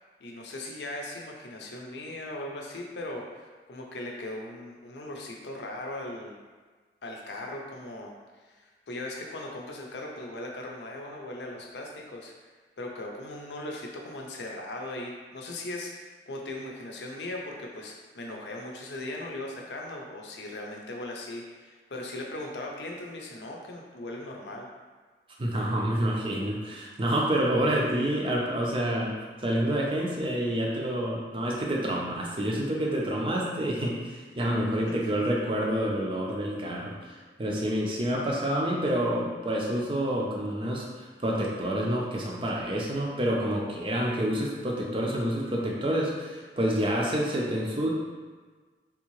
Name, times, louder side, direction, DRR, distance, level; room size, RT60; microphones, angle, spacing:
voice 1, 0.2-6.4 7.0-8.1 8.4-12.5 12.8-24.7 34.9-35.2, left 1 dB, 75° left, 0 dB, 0.6 m, -39 dB
voice 2, 25.4-29.2 29.4-47.9, right 1 dB, 30° right, -3 dB, 0.5 m, -28 dB
3.5 x 2.7 x 3.0 m, 1.4 s
head